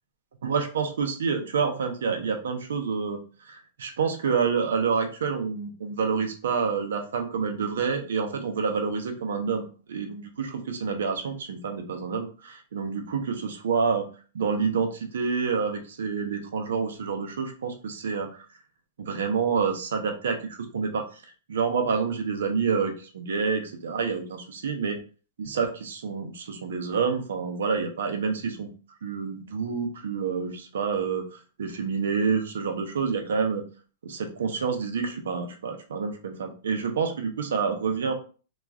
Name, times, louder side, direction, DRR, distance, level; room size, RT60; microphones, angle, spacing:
voice 1, 0.4-3.2 3.4-14.0 14.3-18.4 19.0-21.0 21.5-25.0 25.4-28.7 29.0-31.2 31.6-33.6 34.0-38.1, right 5 dB, 90° right, 4 dB, 0.6 m, -28 dB
3.0 x 2.4 x 2.4 m, 0.37 s
hypercardioid pair, 140°, 0 cm